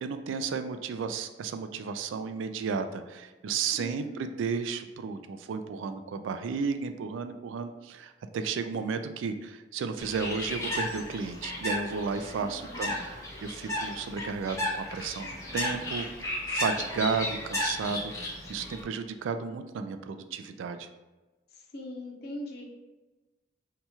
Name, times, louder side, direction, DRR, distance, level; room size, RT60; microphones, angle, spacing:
voice 1, 0.0-20.9, right 5 dB, 80° right, 8 dB, 0.3 m, -33 dB
voice 2, 3.8-4.3 12.4-13.0 21.5-22.6, left 1 dB, 55° left, 0 dB, 0.6 m, -41 dB
Bird, 10.0-18.8, left 1 dB, 15° left, 0.7 m, -34 dB
2.8 x 2.3 x 4.2 m, 1.2 s
head